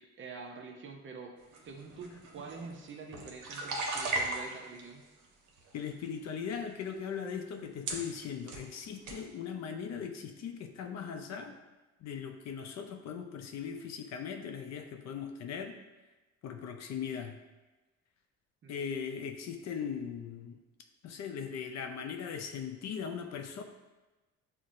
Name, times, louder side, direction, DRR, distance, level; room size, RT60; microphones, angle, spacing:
voice 1, 0.0-1.3 1.6-5.0 18.6-18.9, right 4 dB, 40° right, 2 dB, 0.6 m, -46 dB
sound 1, 1.5-4.8 5.5-6.1 6.8-6.9 7.5-7.6 7.8-8.7 9.0-9.2, right 2 dB, 75° right, 0.7 m, -37 dB
voice 2, 5.7-11.6 12.0-15.8 16.4-17.4 18.7-20.6 21.0-23.6, left 7 dB, 60° left, 6 dB, 0.4 m, -39 dB
5.7 x 2.1 x 2.5 m, 1.1 s
cardioid pair, 90°, 30 cm